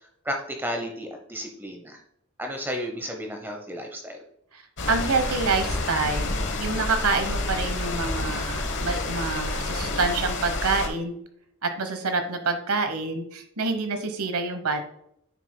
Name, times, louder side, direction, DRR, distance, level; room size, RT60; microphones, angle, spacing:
voice 1, 0.2-2.0 2.4-4.2, equal, 10° right, 3 dB, 0.8 m, -33 dB
voice 2, 4.5-6.3 6.6-11.1 11.6-14.8, right 4 dB, 85° right, 7 dB, 1.1 m, -27 dB
sound 1, 4.8-10.9, left 2 dB, 55° left, 1.0 m, -29 dB
9.1 x 6.7 x 2.2 m, 0.72 s
head